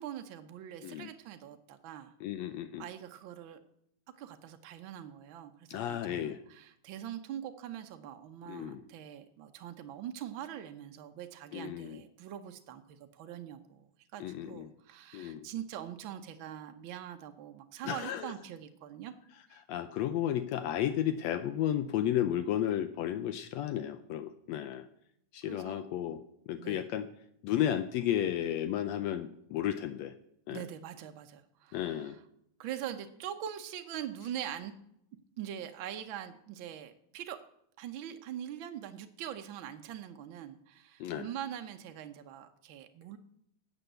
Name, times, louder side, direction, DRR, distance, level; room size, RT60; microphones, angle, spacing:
voice 1, 0.0-2.1 2.8-3.6 4.2-19.1 19.5-19.6 25.5-25.9 26.6-26.8 30.5-32.1 32.6-34.7 35.4-37.4 37.8-43.2, right 10 dB, 80° right, 7 dB, 1.1 m, -43 dB
voice 2, 2.2-2.8 5.7-6.4 8.5-8.8 11.5-12.0 14.2-14.7 15.1-15.5 17.8-18.3 19.6-24.9 25.3-27.1 27.4-30.1 30.5-30.6 31.7-32.2 41.0-41.3, left 11 dB, 75° left, 11 dB, 1.8 m, -33 dB
12.5 x 8.2 x 7.9 m, 0.75 s
omnidirectional pair, 3.3 m